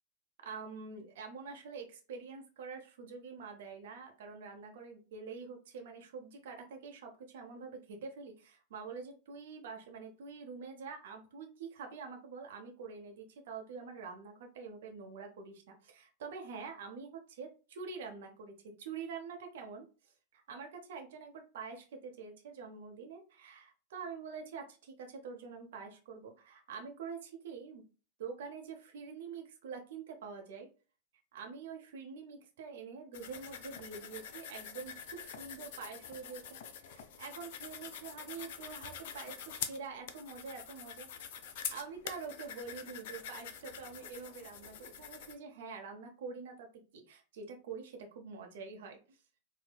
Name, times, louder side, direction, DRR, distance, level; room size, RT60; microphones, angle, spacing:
voice 1, 0.4-19.8 20.3-27.8 28.2-30.7 31.3-41.1 41.7-49.2, right 5 dB, 55° right, 3 dB, 0.7 m, -46 dB
sound 1, 33.1-45.3, left 8 dB, 50° left, 0.4 m, -46 dB
4.4 x 2.1 x 2.3 m, 0.35 s
figure-of-eight pair, 90°, 0 cm